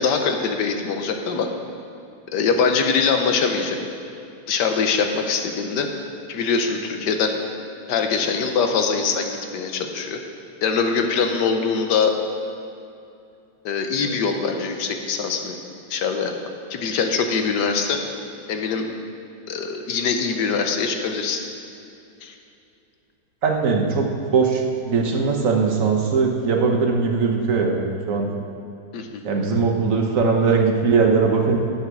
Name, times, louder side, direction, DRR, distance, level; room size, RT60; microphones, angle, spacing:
voice 1, 0.0-1.5 2.3-3.8 4.5-5.9 6.3-7.4 7.9-10.2 10.6-12.1 13.6-15.6 15.9-16.3 16.7-18.0 18.5-18.9 19.5-21.4 22.2-22.3 28.9-29.2, left 5 dB, 80° left, 5 dB, 1.5 m, -23 dB
voice 2, 23.4-24.1 24.3-28.3 29.2-31.6, right 4 dB, 55° right, 1 dB, 1.3 m, -20 dB
9.5 x 7.3 x 6.1 m, 2.7 s
omnidirectional pair, 1.8 m